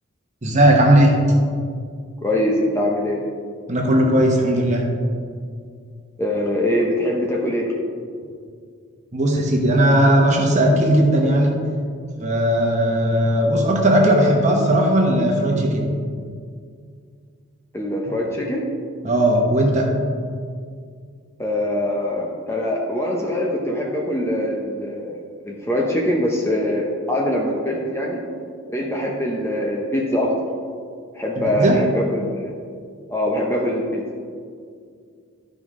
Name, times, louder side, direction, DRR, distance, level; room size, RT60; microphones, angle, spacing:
voice 1, 0.4-1.2 3.7-4.8 9.1-11.6 12.2-15.8 18.1-18.2 19.0-19.9 31.4-31.8, right 1 dB, 35° right, 0 dB, 1.1 m, -17 dB
voice 2, 2.2-3.2 6.2-7.7 17.7-18.6 21.4-25.2 25.4-28.2 28.7-30.3 31.1-32.5 33.1-34.0, left 1 dB, 10° left, -1 dB, 0.7 m, -23 dB
12.5 x 5.2 x 3.7 m, 2.2 s
head